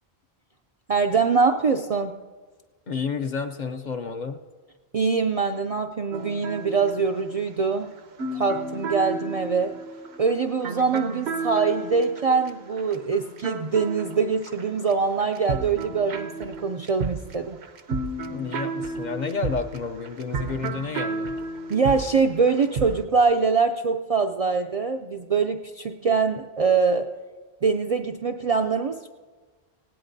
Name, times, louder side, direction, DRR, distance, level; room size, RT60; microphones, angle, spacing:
voice 1, 0.9-2.2 4.9-7.9 8.3-9.8 10.2-17.6 21.7-27.1 27.6-29.1, right 5 dB, 55° right, 5 dB, 0.4 m, -23 dB
voice 2, 2.9-4.4 18.3-21.3, left 5 dB, 50° left, 6 dB, 0.6 m, -30 dB
sound 1, 6.1-14.9 15.2-23.0, right 3 dB, 85° right, 1.0 m, -33 dB
19.5 x 16.5 x 2.6 m, 1.4 s
omnidirectional pair, 1.1 m